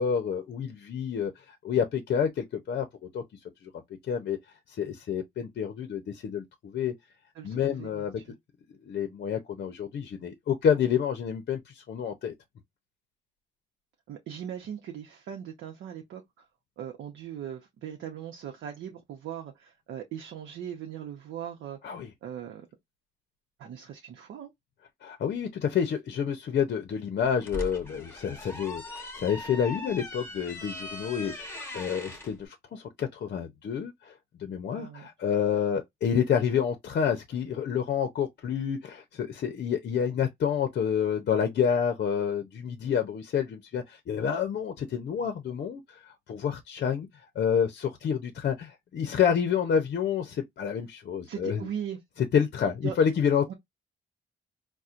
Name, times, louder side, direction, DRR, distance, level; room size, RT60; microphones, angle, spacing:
voice 1, 0.0-2.8 3.1-3.2 3.6-3.7 4.1-4.4 4.7-6.9 7.4-8.2 8.9-12.3 21.8-22.1 25.0-34.1 34.4-47.1 47.4-51.7 52.3-53.5, left 7 dB, 55° left, 0.6 m, -28 dB
voice 2, 7.3-8.4 14.1-16.4 16.8-22.7 23.6-24.5 34.7-35.1 51.3-52.0 52.8-53.0 53.5-53.6, right 9 dB, 75° right, 0.8 m, -39 dB
sound 1, 27.2-32.3, left 1 dB, 10° left, 1.0 m, -40 dB
4.2 x 2.2 x 2.5 m
cardioid pair, 90°, 20 cm